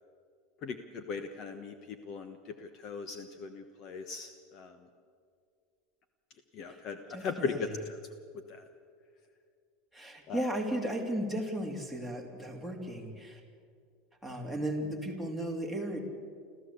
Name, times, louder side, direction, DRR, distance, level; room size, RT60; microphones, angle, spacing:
voice 1, 0.6-4.7 6.5-7.7 8.5-8.6 10.3-10.4, left 5 dB, 40° left, 8 dB, 1.2 m, -38 dB
voice 2, 7.1-7.7 9.9-13.4 14.2-16.0, right 1 dB, 5° left, 4 dB, 2.9 m, -35 dB
26.0 x 14.5 x 8.3 m, 2.2 s
supercardioid pair, 150°, 0 cm